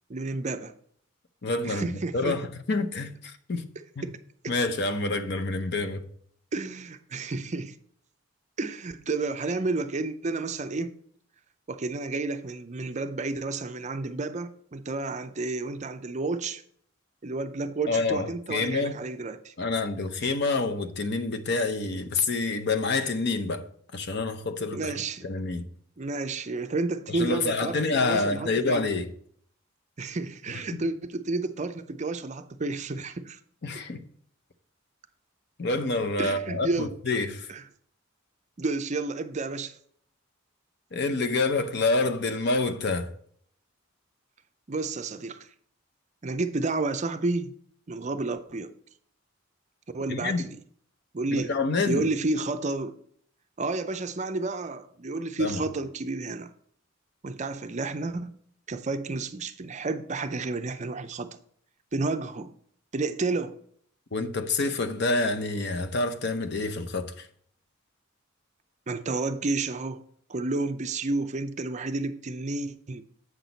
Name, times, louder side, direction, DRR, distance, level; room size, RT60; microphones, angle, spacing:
voice 1, 0.1-0.7 1.6-2.4 4.0-4.1 4.4-4.5 6.5-7.8 8.6-10.9 11.7-16.6 17.2-19.5 24.7-25.3 26.0-28.8 30.0-33.4 36.2-37.0 37.5-37.6 38.6-39.8 44.7-45.5 46.2-47.5 47.9-48.7 49.9-50.5 51.1-51.5 51.9-52.9 53.6-56.5 57.2-58.3 58.7-61.3 61.9-62.5 62.9-63.6 68.9-70.0 70.3-73.0, right 3 dB, 35° right, 0.5 m, -31 dB
voice 2, 1.4-3.7 4.0-4.1 4.5-6.1 17.9-19.0 19.6-25.0 25.2-25.6 27.1-29.1 30.7-30.9 33.6-34.0 35.6-37.5 40.9-43.1 50.1-50.4 51.3-52.0 55.4-55.6 64.1-67.3, left 3 dB, 55° left, 0.7 m, -27 dB
8.1 x 6.0 x 4.0 m
head